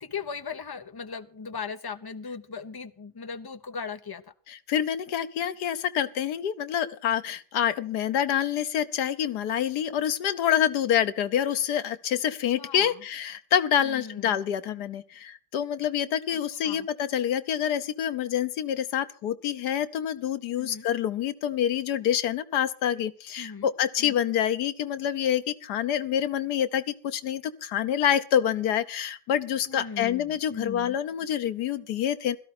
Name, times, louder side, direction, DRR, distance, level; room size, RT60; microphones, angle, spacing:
voice 1, 0.0-4.3 12.6-13.0 13.8-14.4 16.6-16.9 20.6-20.9 23.4-23.7 24.0-24.2 29.7-31.0, left 5 dB, 20° left, 10 dB, 0.6 m, -38 dB
voice 2, 4.5-32.4, left 10 dB, 80° left, 12 dB, 1.5 m, -27 dB
16.5 x 13.0 x 4.3 m, 0.42 s
omnidirectional pair, 1.7 m